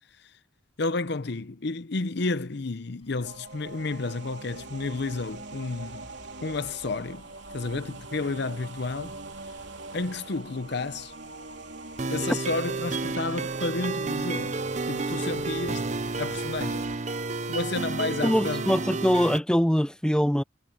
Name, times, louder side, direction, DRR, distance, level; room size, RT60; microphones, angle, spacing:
voice 1, 0.8-6.1 6.4-7.3 7.5-9.2 9.9-11.1 12.1-14.6 14.9-15.9 16.2-16.9 17.5-18.7, left 3 dB, 55° left, 0.7 m, -31 dB
sound 1, 3.0-18.0, left 2 dB, 25° left, 6.9 m, -57 dB
sound 2, 3.2-17.0, right 3 dB, 60° right, 3.6 m, -42 dB
sound 3, 12.0-19.4, right 3 dB, 35° right, 0.7 m, -31 dB
voice 2, 18.2-20.4, equal, 5° left, 0.5 m, -23 dB
head